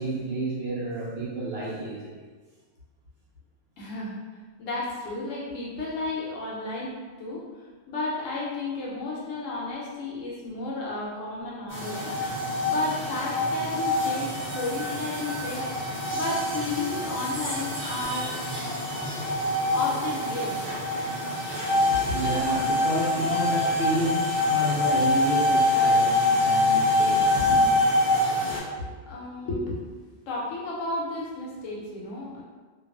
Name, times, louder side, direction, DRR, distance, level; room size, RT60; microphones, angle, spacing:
voice 1, 0.0-2.2 21.7-27.7, right 1 dB, 65° right, -6 dB, 0.7 m, -30 dB
voice 2, 3.8-4.2 4.6-7.4 7.9-12.1 12.6-15.6 16.1-18.3 19.7-20.6 21.9-22.2 28.4-29.8 30.3-32.4, left 2 dB, 80° left, -4 dB, 1.0 m, -32 dB
sound 1, 11.7-28.6, left 2 dB, 15° left, 0.4 m, -25 dB
2.5 x 2.3 x 2.3 m, 1.4 s
omnidirectional pair, 1.4 m